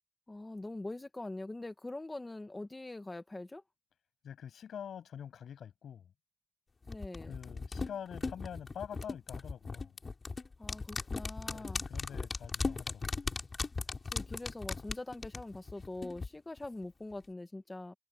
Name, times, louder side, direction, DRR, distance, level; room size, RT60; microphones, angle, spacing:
voice 1, 0.3-3.6 6.9-7.3 10.6-11.8 14.1-17.9, left 2 dB, 15° left, 1.3 m, -43 dB
voice 2, 4.2-6.1 7.3-9.9 11.5-13.1, left 8 dB, 75° left, 6.8 m, -45 dB
sound 1, 6.9-16.3 16.6-16.7, left 4 dB, 30° left, 3.2 m, -38 dB
wide cardioid pair, 120°, 0 cm